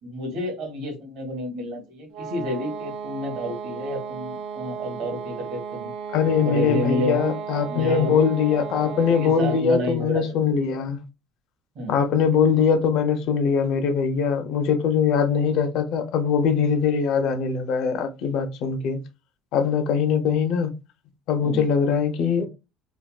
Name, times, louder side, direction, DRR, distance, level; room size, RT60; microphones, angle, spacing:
voice 1, 0.0-5.9 6.4-7.4 7.7-8.2 9.0-10.4 11.7-12.0 21.4-21.6, equal, 60° right, 1.5 m, -30 dB
sound 1, 2.1-9.8, right 7 dB, 80° right, 0.5 m, -35 dB
voice 2, 6.1-11.0 11.9-19.0 19.5-20.7 21.3-22.5, left 6 dB, 55° left, 0.6 m, -22 dB
3.5 x 2.2 x 2.3 m
cardioid pair, 155°, 0 cm